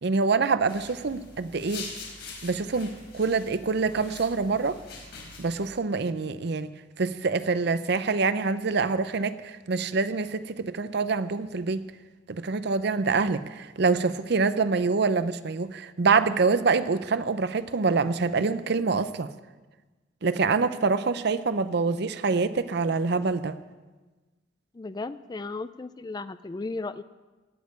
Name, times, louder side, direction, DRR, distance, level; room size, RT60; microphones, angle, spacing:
voice 1, 0.0-1.9 2.4-4.8 5.4-6.7 7.0-11.8 12.3-19.3 20.2-23.6, right 4 dB, 60° right, 0.6 m, -25 dB
sound 1, 0.7-5.7, left 4 dB, 60° left, 4.2 m, -44 dB
voice 2, 24.7-27.0, left 3 dB, 20° left, 0.3 m, -35 dB
16.5 x 6.6 x 9.7 m
head